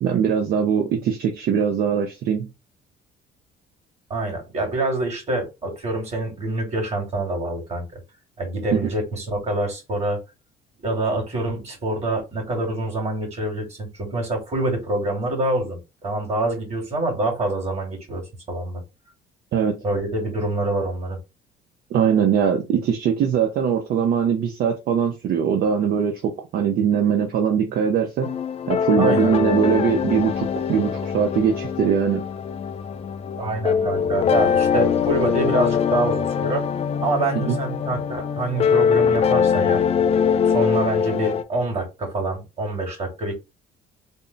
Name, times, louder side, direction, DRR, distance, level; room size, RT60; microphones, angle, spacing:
voice 1, 0.0-2.5 8.7-8.9 19.5-19.8 21.9-28.4 28.7-32.2 37.3-37.6, right 7 dB, 65° right, 0.6 m, -21 dB
voice 2, 4.1-7.8 8.4-10.2 10.8-18.8 19.8-21.2 29.0-29.4 33.3-36.6 37.0-39.8 40.5-43.4, right 2 dB, 40° right, 2.2 m, -26 dB
sound 1, 28.2-41.4, left 7 dB, 35° left, 0.4 m, -22 dB
3.6 x 2.1 x 3.9 m
cardioid pair, 110°, 17 cm